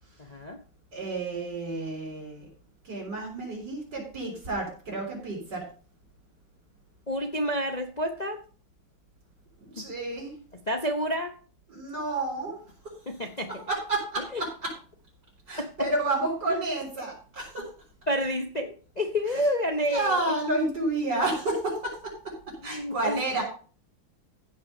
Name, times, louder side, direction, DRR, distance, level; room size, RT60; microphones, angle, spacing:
voice 1, 0.9-2.5 2.8-5.6 9.6-10.3 11.7-12.6 13.7-14.7 15.5-17.7 19.9-22.3 22.6-23.4, right 2 dB, 50° right, -9 dB, 5.7 m, -30 dB
voice 2, 7.1-8.4 9.8-9.9 10.7-11.3 13.1-13.5 14.3-14.4 15.6-15.7 16.5-16.6 18.1-20.3 22.7-23.2, equal, 50° left, 5 dB, 0.4 m, -29 dB
15.0 x 5.6 x 5.4 m, 0.39 s
omnidirectional pair, 2.3 m